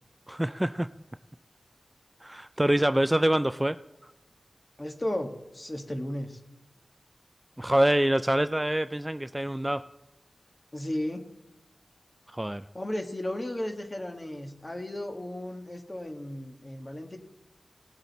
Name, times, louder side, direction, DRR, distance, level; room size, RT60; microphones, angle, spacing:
voice 1, 0.3-0.9 2.2-3.8 4.0-4.1 7.6-9.8 12.3-12.6, right 1 dB, 15° right, 12 dB, 0.3 m, -25 dB
voice 2, 4.8-6.4 10.7-11.2 12.7-17.2, left 1 dB, 30° left, 5 dB, 1.6 m, -34 dB
18.5 x 7.8 x 4.2 m, 0.99 s
wide cardioid pair, 60°, 0 cm